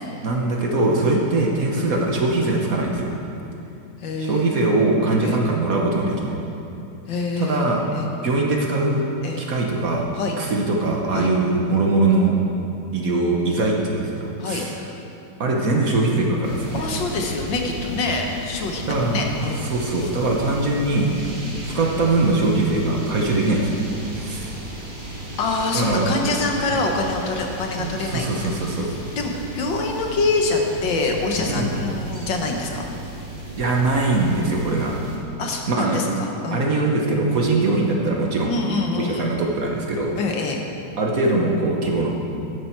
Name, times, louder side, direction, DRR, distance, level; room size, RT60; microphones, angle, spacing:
voice 1, 0.2-3.1 4.2-6.3 7.4-7.8 8.2-9.0 9.4-10.1 10.4-12.3 12.9-14.8 15.4-16.9 18.9-19.3 19.6-21.1 21.6-24.5 25.7-26.3 26.7-26.8 27.8-28.9 31.5-31.8 33.6-34.9 35.7-36.1 36.5-38.5 38.9-40.2 41.0-42.1, right 2 dB, 50° right, -1 dB, 1.4 m, -22 dB
voice 2, 4.0-4.5 5.2-5.4 7.1-7.7 7.9-8.1 9.2-9.4 10.1-10.4 11.1-11.3 14.4-14.7 16.7-19.7 19.9-20.1 25.4-28.3 28.7-32.8 35.4-36.7 38.5-39.3 40.2-40.7, left 3 dB, 70° left, 2 dB, 1.8 m, -25 dB
sound 1, 16.4-35.2, right 1 dB, 25° right, 1.7 m, -35 dB
13.0 x 10.0 x 4.6 m, 2.8 s
omnidirectional pair, 2.1 m